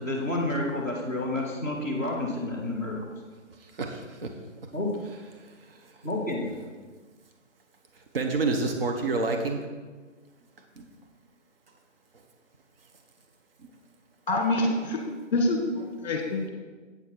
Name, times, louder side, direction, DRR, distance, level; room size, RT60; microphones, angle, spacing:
voice 1, 0.0-3.0 4.7-4.9 6.0-6.5, left 2 dB, 15° right, -7 dB, 0.7 m, -29 dB
voice 2, 3.8-4.3 8.1-9.6 10.8-10.9, right 3 dB, 50° right, 3 dB, 1.0 m, -28 dB
voice 3, 14.3-15.0 15.3-16.5, left 2 dB, 35° left, 2 dB, 1.5 m, -26 dB
8.6 x 6.4 x 4.4 m, 1.4 s
figure-of-eight pair, 155°, 38 cm